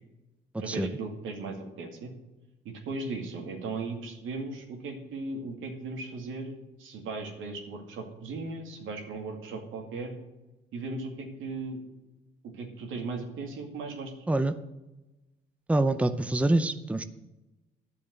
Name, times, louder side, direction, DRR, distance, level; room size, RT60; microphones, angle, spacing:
voice 1, 0.6-2.1 2.6-10.1 10.7-11.8 12.5-14.2, right 3 dB, 85° right, 3 dB, 2.3 m, -37 dB
voice 2, 15.7-17.0, right 2 dB, 5° right, 11 dB, 0.6 m, -25 dB
10.0 x 7.1 x 8.0 m, 1.0 s
cardioid pair, 90°, 20 cm